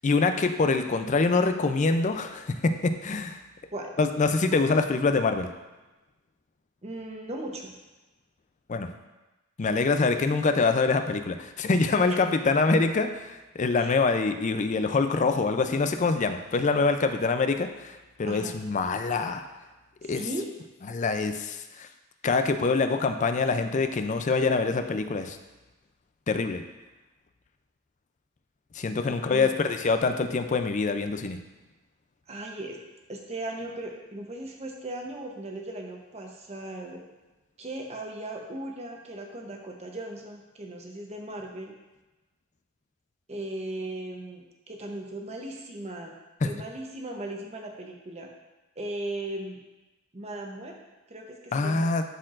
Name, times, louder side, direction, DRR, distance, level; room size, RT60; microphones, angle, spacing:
voice 1, 0.0-3.4 4.0-5.5 8.7-8.9 9.6-19.4 20.0-20.3 20.9-21.9 22.2-25.4 26.3-26.6 28.7-31.4 46.4-46.5 51.5-52.0, left 4 dB, 35° left, 8 dB, 0.4 m, -25 dB
voice 2, 6.8-7.7 13.8-13.9 18.2-18.6 20.0-20.5 29.1-29.5 32.3-32.8 33.1-37.0 37.6-41.7 43.3-46.1 46.4-48.3 48.8-49.6 50.1-50.7 51.1-51.9, right 1 dB, 30° right, 1 dB, 0.8 m, -37 dB
11.5 x 4.5 x 2.5 m, 1.1 s
head